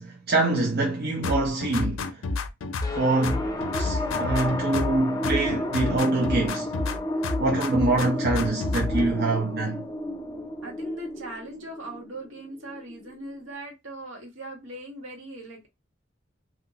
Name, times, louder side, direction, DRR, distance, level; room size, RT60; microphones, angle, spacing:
voice 1, 0.0-2.2 2.9-3.5 3.8-6.7 7.4-9.8, right 2 dB, 50° right, 0.7 m, -25 dB
sound 1, 1.2-3.0 3.2-5.0 5.2-7.0 7.2-9.1, left 3 dB, 85° left, 0.5 m, -30 dB
sound 2, 2.8-13.5, left 1 dB, 20° left, 0.5 m, -32 dB
voice 2, 10.6-15.7, right 1 dB, 75° right, 1.3 m, -40 dB
2.9 x 2.4 x 2.8 m
head